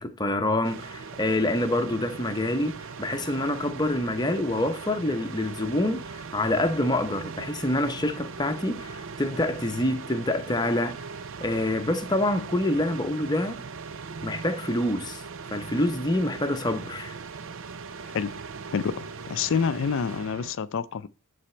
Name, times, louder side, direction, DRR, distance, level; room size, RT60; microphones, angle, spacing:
voice 1, 0.0-10.9 11.4-13.6 14.2-15.2 15.5-17.1, left 1 dB, 20° left, 0.8 m, -26 dB
sound 1, 0.6-20.5, right 5 dB, 60° right, 0.6 m, -39 dB
voice 2, 18.1-18.4 18.7-21.1, left 6 dB, 60° left, 0.4 m, -28 dB
12.0 x 4.2 x 4.3 m
head